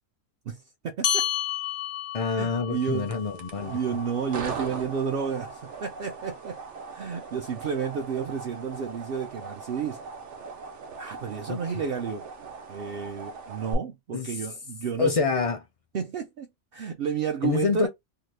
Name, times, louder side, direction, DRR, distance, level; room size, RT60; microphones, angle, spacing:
voice 1, 0.5-1.3 2.3-3.1 3.6-6.6 6.9-10.0 11.0-12.3 12.7-15.2 15.9-16.5 16.7-17.9, right 6 dB, 60° right, 0.7 m, -31 dB
hand bell, 1.0-5.8, left 11 dB, 80° left, 0.9 m, -33 dB
voice 2, 2.1-3.8 11.5-11.6 14.1-14.3 15.0-15.6 17.4-17.9, left 5 dB, 50° left, 0.4 m, -26 dB
sound 1, 3.0-13.7, right 4 dB, 85° right, 1.0 m, -39 dB
2.8 x 2.3 x 3.2 m
omnidirectional pair, 1.2 m